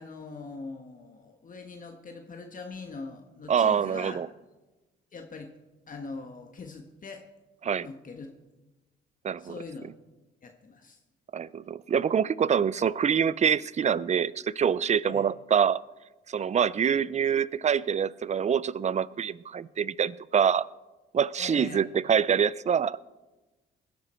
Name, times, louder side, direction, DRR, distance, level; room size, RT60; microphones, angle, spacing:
voice 1, 0.0-4.2 5.1-5.5 5.9-7.3 7.8-8.3 9.4-9.9 10.4-11.0 15.0-15.3 21.4-21.8, left 4 dB, 40° left, 4 dB, 1.4 m, -42 dB
voice 2, 3.5-4.3 7.6-7.9 9.2-9.5 11.3-15.8 16.3-20.7 21.1-23.1, right 7 dB, 35° right, 20 dB, 0.5 m, -25 dB
20.0 x 11.5 x 4.4 m, 1.2 s
cardioid pair, 90°, 20 cm